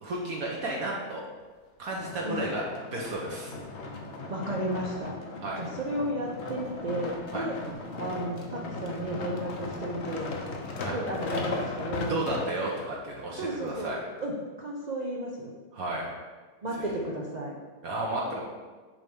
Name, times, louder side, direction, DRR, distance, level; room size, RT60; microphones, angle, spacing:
voice 1, 0.0-1.2 1.8-2.6 2.9-3.5 5.4-5.6 7.3-7.5 10.8-11.0 12.1-14.0 15.7-16.1 17.8-18.4, right 2 dB, 65° right, -3 dB, 1.3 m, -32 dB
sound 1, 1.9-12.9 13.5-13.6, left 3 dB, 55° left, 0.8 m, -37 dB
voice 2, 4.3-5.2 5.6-7.6 7.9-10.3 10.9-12.2 13.4-15.5 16.6-17.6, right 1 dB, 80° right, -2 dB, 0.3 m, -33 dB
7.2 x 3.3 x 5.3 m, 1.4 s
omnidirectional pair, 1.8 m